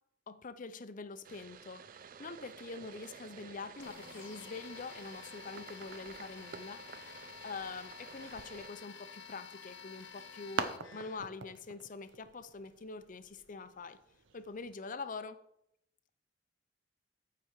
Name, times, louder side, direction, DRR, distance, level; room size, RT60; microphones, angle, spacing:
voice 1, 0.3-6.8 7.4-14.0 14.3-15.4, left 4 dB, 45° left, 12 dB, 0.6 m, -45 dB
sound 1, 1.2-8.7, right 6 dB, 45° right, 0.4 m, -52 dB
sound 2, 3.8-11.2, left 6 dB, 90° left, 1.0 m, -51 dB
sound 3, 9.6-14.8, right 4 dB, 80° right, 0.8 m, -44 dB
14.5 x 4.8 x 4.7 m, 0.78 s
head